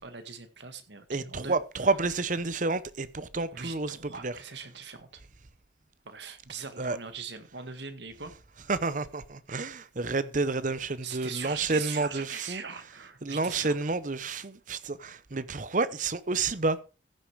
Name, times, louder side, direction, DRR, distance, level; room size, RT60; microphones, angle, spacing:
voice 1, 0.0-1.6 3.5-5.2 6.1-8.3 11.0-13.8, right 6 dB, 70° right, 1.8 m, -41 dB
voice 2, 1.1-4.0 4.2-4.3 6.8-7.0 8.7-12.6 13.2-16.8, right 3 dB, 45° right, 0.8 m, -30 dB
15.0 x 6.9 x 4.7 m
head